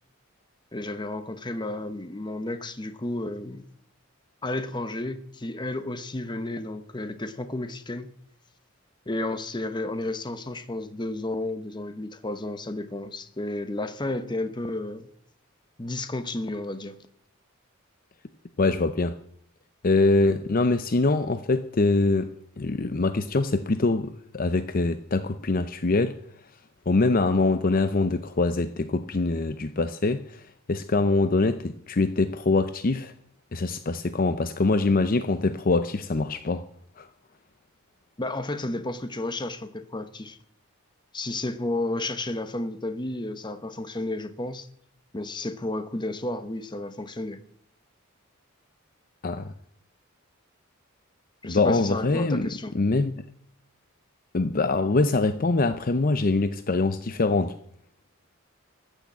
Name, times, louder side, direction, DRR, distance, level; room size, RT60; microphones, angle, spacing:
voice 1, 0.7-3.6 4.4-8.1 9.1-15.1 15.8-17.0 38.2-40.4 41.1-44.7 45.1-47.4 51.4-52.8, left 2 dB, 20° left, 0.9 m, -32 dB
voice 2, 18.6-19.2 19.8-26.2 26.9-33.1 33.5-36.7 37.0-37.1 49.2-49.5 51.4-53.2 54.3-57.5, left 3 dB, 40° left, 0.6 m, -24 dB
14.0 x 6.5 x 8.5 m
head